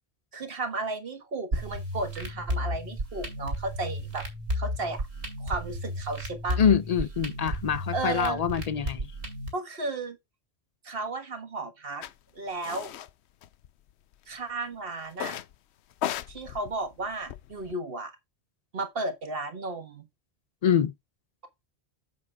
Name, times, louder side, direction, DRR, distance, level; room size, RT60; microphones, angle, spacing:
voice 1, 0.3-4.2 4.5-5.0 5.4-6.6 7.9-8.4 9.5-10.2 10.8-12.0 12.3-12.9 14.3-15.4 16.3-18.1 18.7-20.0, right 3 dB, 60° right, 1.6 m, -34 dB
sound 1, 1.5-9.5, equal, 85° right, 2.8 m, -33 dB
voice 2, 6.6-9.1 20.6-20.9, left 8 dB, 50° left, 0.5 m, -25 dB
sound 2, 12.0-12.1 12.6-13.1 13.4-14.1 15.1-15.5 15.9-17.7, left 11 dB, 85° left, 0.9 m, -36 dB
8.2 x 7.2 x 2.3 m
omnidirectional pair, 1.1 m